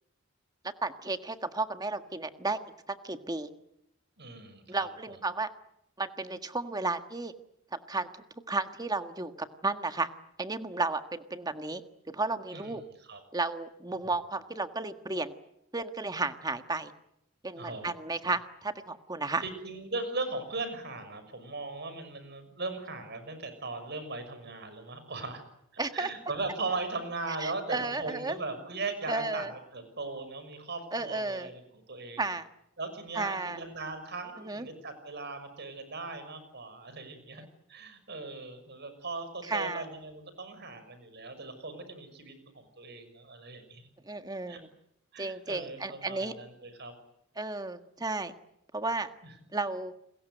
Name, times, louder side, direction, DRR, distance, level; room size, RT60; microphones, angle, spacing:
voice 1, 0.8-2.6 2.9-3.5 4.7-5.5 6.0-7.3 7.7-8.1 8.5-10.1 10.4-11.8 12.1-12.8 13.3-15.3 15.7-16.9 17.4-19.4 25.8-26.1 27.4-28.4 29.1-29.5 30.9-31.5 32.2-32.5 33.1-33.6 34.4-34.7 39.5-39.8 44.0-44.7 45.2-46.3 47.4-48.3 48.7-49.1 49.5-49.9, right 3 dB, 20° right, 8 dB, 1.6 m, -33 dB
voice 2, 4.2-5.2 12.5-12.8 13.1-13.2 17.6-17.9 19.4-25.4 25.7-32.4 32.8-37.4 37.7-43.9 44.5-44.6 45.1-46.9 49.2-49.3, right 3 dB, 55° right, 10 dB, 6.2 m, -39 dB
29.5 x 21.5 x 7.9 m, 0.81 s
head